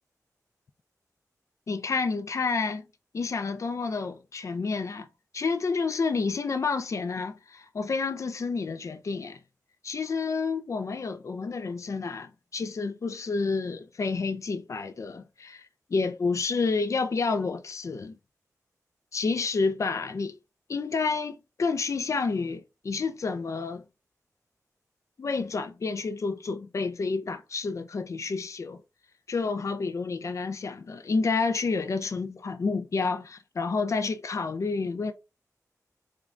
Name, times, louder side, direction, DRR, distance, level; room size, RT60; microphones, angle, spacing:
voice 1, 1.7-2.8 3.1-5.1 5.3-9.4 9.8-18.2 19.1-20.4 20.7-23.8 25.2-28.8 29.3-35.1, left 4 dB, 55° left, 0.4 m, -29 dB
3.7 x 2.3 x 3.2 m
cardioid pair, 60°, 6 cm